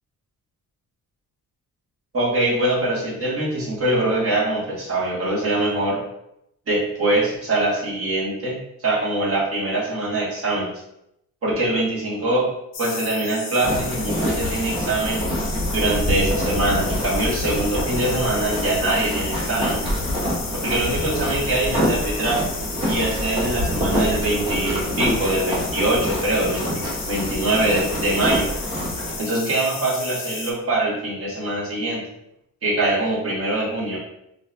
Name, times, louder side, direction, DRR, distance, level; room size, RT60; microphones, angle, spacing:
voice 1, 2.1-6.0 6.7-10.7 11.4-12.5 12.8-15.3 15.7-19.8 20.6-22.5 22.8-28.5 29.2-32.0 32.6-34.0, right 2 dB, 45° right, -7 dB, 1.3 m, -23 dB
sound 1, 12.7-30.5, left 4 dB, 40° left, 0.5 m, -33 dB
sound 2, 13.6-29.2, equal, 15° right, 1.0 m, -26 dB
4.0 x 2.6 x 2.3 m, 0.81 s
cardioid pair, 155°, 33 cm